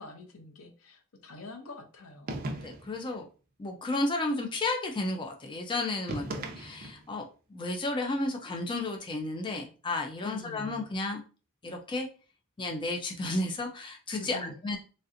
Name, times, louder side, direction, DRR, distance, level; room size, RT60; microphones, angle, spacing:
voice 1, 0.0-2.5 6.1-6.6 10.2-10.8 14.1-14.6, left 2 dB, 80° left, 4 dB, 0.7 m, -45 dB
sound 1, 2.3-3.0 6.1-7.1, right 2 dB, 45° right, 0.5 m, -37 dB
voice 2, 2.6-3.3 3.6-6.3 6.6-7.2 7.5-11.2 11.6-12.1 12.6-14.8, left 2 dB, 25° left, 3 dB, 0.4 m, -32 dB
3.2 x 2.7 x 2.5 m, 0.36 s
head